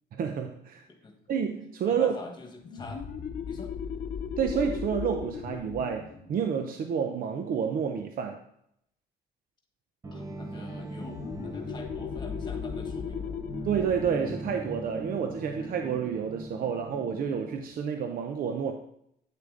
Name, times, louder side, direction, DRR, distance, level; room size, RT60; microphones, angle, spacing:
voice 1, 0.1-0.8 1.3-2.2 4.4-8.4 13.6-18.7, right 7 dB, 55° right, 5 dB, 0.6 m, -29 dB
voice 2, 1.9-3.7 10.1-13.3, left 3 dB, 25° left, 3 dB, 1.5 m, -46 dB
sound 1, 2.6-7.9 11.0-16.2, left 7 dB, 50° left, 0.9 m, -38 dB
sound 2, 10.0-17.6, right 1 dB, 15° right, 0.7 m, -40 dB
9.2 x 6.7 x 3.8 m, 0.74 s
cardioid pair, 170°, 18 cm